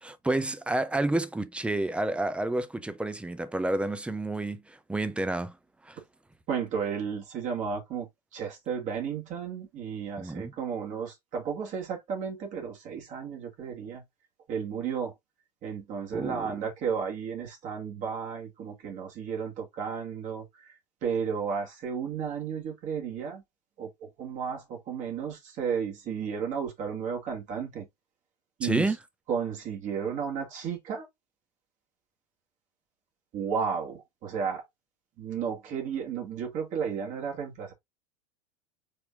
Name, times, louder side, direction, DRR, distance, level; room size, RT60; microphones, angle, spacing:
voice 1, 0.0-5.6 5.8-6.0 10.2-10.5 16.1-16.5 28.6-29.0, right 2 dB, 5° right, 0.6 m, -30 dB
voice 2, 6.5-8.1 8.3-14.0 14.5-15.1 15.6-20.5 21.0-23.4 23.8-27.9 28.6-28.9 29.3-31.1 33.3-34.6 35.2-37.7, right 7 dB, 40° right, 2.2 m, -33 dB
4.8 x 4.3 x 2.5 m
figure-of-eight pair, 85°, 20 cm